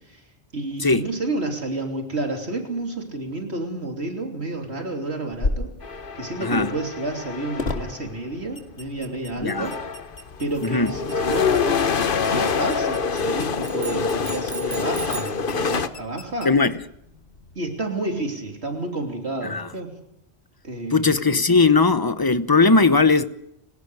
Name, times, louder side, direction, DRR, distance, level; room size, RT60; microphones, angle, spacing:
voice 1, 0.5-5.7 6.2-9.8 10.4-11.6 12.3-16.5 17.6-20.0 20.6-21.2, right 2 dB, 90° right, 3.5 m, -30 dB
sound 1, 5.3-17.6, left 2 dB, 80° left, 2.4 m, -37 dB
sound 2, 5.8-8.0 9.0-9.1 9.4-15.9, left 5 dB, 55° left, 1.2 m, -26 dB
voice 2, 6.4-6.7 9.4-9.7 10.6-10.9 16.4-16.8 19.4-19.7 20.9-23.2, left 4 dB, 20° left, 0.9 m, -18 dB
sound 3, 13.6-15.5, right 5 dB, 35° right, 0.8 m, -36 dB
30.0 x 18.0 x 4.9 m
omnidirectional pair, 1.1 m